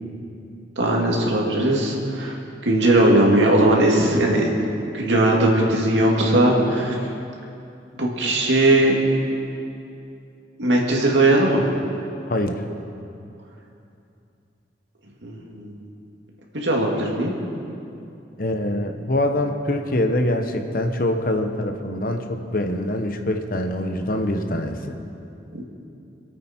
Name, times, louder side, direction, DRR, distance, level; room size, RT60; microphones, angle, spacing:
voice 1, 0.8-2.4 2.6-6.9 8.0-9.0 10.6-11.7 15.2-15.8 16.5-17.3 25.5-25.6, right 1 dB, 80° right, -2 dB, 2.3 m, -19 dB
voice 2, 12.3-12.6 18.4-25.0, left 1 dB, 50° left, 5 dB, 1.0 m, -24 dB
26.0 x 8.7 x 4.4 m, 2.6 s
head